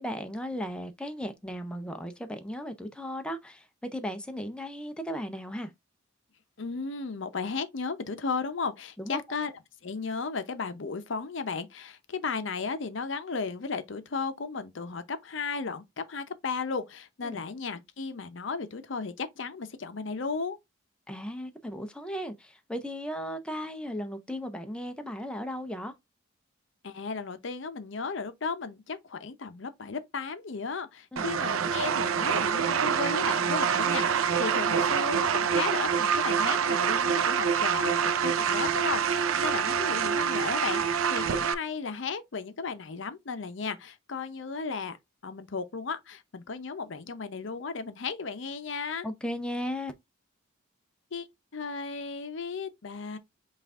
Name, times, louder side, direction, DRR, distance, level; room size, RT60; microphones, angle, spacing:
voice 1, 0.0-5.7 9.0-9.2 17.2-17.4 21.1-25.9 31.1-31.3 49.0-49.9, equal, 5° left, 0.4 m, -36 dB
voice 2, 6.6-9.5 9.8-20.6 26.8-45.0 45.2-49.1 51.1-51.3 51.5-53.2, left 4 dB, 65° left, 0.6 m, -35 dB
sound 1, 31.2-41.5, right 7 dB, 90° right, 0.5 m, -26 dB
5.6 x 2.4 x 3.5 m
head